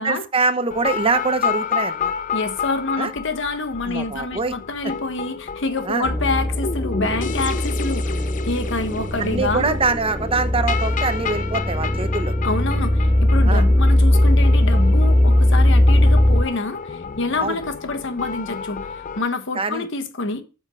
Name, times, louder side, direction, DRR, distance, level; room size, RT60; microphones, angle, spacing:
voice 1, 0.0-2.1 3.0-3.1 3.8-4.5 5.8-6.1 9.2-12.3 13.5-13.7 17.4-17.6 19.5-19.9, right 4 dB, 25° right, 0.7 m, -24 dB
sound 1, 0.7-19.2, left 6 dB, 40° left, 0.4 m, -31 dB
voice 2, 2.3-8.2 8.5-9.8 12.4-18.9 19.2-20.4, left 3 dB, 60° left, 1.2 m, -27 dB
sound 2, 6.0-16.4, left 1 dB, ahead, 1.2 m, -19 dB
8.0 x 5.3 x 6.3 m
head